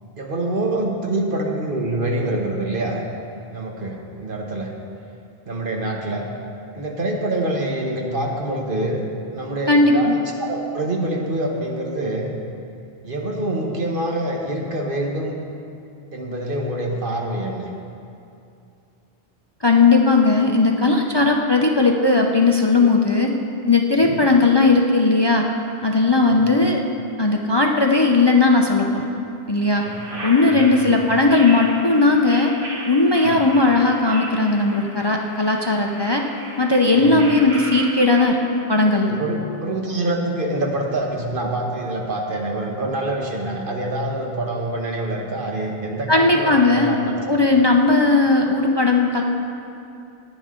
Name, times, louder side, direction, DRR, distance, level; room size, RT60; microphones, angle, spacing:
voice 1, 0.2-3.0 3.5-4.7 5.5-6.3 6.7-9.0 9.3-12.3 13.0-15.4 16.1-17.7 24.0-24.2 26.2-26.5 29.8-30.0 30.4-30.7 33.2-33.4 36.9-37.2 39.1-47.7, right 1 dB, 55° right, 0 dB, 1.4 m, -26 dB
voice 2, 9.7-10.1 19.6-23.3 23.7-25.4 25.8-26.8 27.2-29.0 29.5-29.8 30.2-32.5 32.9-36.2 36.6-38.4 38.7-39.1 46.1-47.0 47.3-49.2, left 3 dB, 30° left, 1 dB, 0.6 m, -17 dB
sound 1, 29.6-38.2, right 1 dB, 80° right, 2.8 m, -35 dB
16.5 x 10.0 x 3.8 m, 2.6 s
omnidirectional pair, 1.1 m